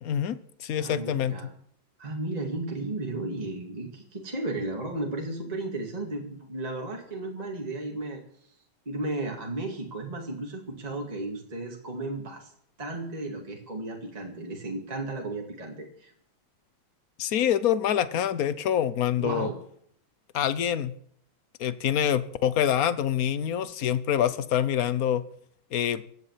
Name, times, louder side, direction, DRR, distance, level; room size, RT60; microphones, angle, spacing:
voice 1, 0.0-1.3 17.2-19.5 20.3-20.9 21.6-25.2 25.7-26.0, left 10 dB, 55° left, 15 dB, 1.1 m, -26 dB
voice 2, 0.8-1.5 2.0-8.2 8.9-12.5 12.8-16.1 19.2-19.6, right 2 dB, 20° right, 0 dB, 2.2 m, -34 dB
16.5 x 9.7 x 7.4 m, 0.65 s
omnidirectional pair, 2.2 m